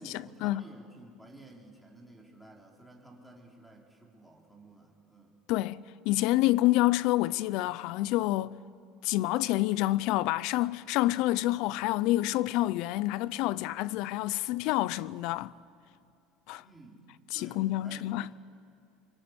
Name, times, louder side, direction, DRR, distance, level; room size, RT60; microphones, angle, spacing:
voice 1, 0.0-5.4 16.6-17.1 17.3-18.2, right 2 dB, ahead, 3.9 m, -53 dB
voice 2, 5.5-8.5 9.0-15.5 16.5-16.6 17.3-18.3, left 17 dB, 65° left, 0.6 m, -28 dB
26.5 x 24.5 x 8.1 m
cardioid pair, 145°, 0 cm